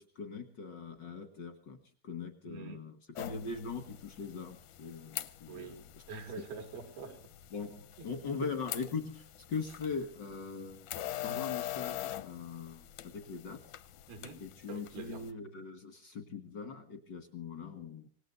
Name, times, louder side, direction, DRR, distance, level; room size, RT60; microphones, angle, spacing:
voice 1, 0.0-1.8 2.0-6.0 6.4-6.5 7.5-10.9 11.2-13.6 14.4-18.1, left 5 dB, 60° left, 8 dB, 1.1 m, -41 dB
voice 2, 2.5-2.9 5.5-7.3 8.4-8.5 14.1-15.3, right 5 dB, 75° right, 7 dB, 4.0 m, -46 dB
sound 1, 3.1-15.3, left 13 dB, 75° left, 1.8 m, -44 dB
26.0 x 18.5 x 2.6 m, 0.42 s
omnidirectional pair, 4.5 m